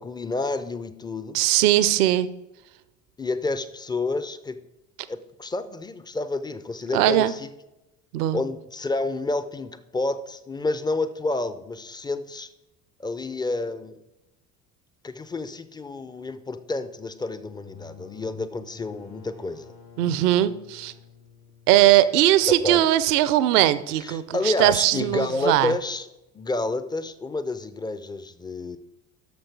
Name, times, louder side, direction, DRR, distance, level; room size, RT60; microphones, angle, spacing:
voice 1, 0.0-1.4 3.2-4.6 5.1-7.5 8.3-12.5 13.0-14.0 15.0-19.7 22.5-22.9 24.0-26.1 26.3-28.8, left 2 dB, 10° left, 12 dB, 0.4 m, -29 dB
voice 2, 1.3-2.3 6.9-7.3 8.1-8.4 20.0-20.9 21.7-25.7, right 13 dB, 70° right, 15 dB, 0.6 m, -20 dB
sound 1, 17.5-23.0, left 5 dB, 85° left, 2.0 m, -49 dB
9.5 x 6.5 x 4.6 m, 0.94 s
figure-of-eight pair, 60°, 49 cm